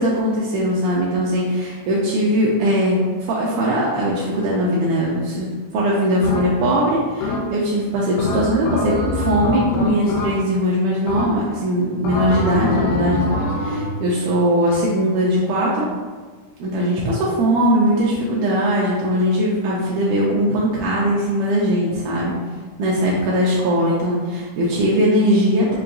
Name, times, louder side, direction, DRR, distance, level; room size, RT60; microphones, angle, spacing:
voice 1, 0.0-3.0 3.3-5.5 5.7-13.2 13.6-15.9 16.6-22.3 22.8-25.8, equal, 80° right, -5 dB, 1.9 m, -20 dB
sound 1, 6.2-6.8 7.2-7.7 8.2-10.7 11.1-11.6 12.0-14.0, left 2 dB, 80° left, 1.6 m, -24 dB
5.6 x 2.3 x 2.5 m, 1.5 s
omnidirectional pair, 3.7 m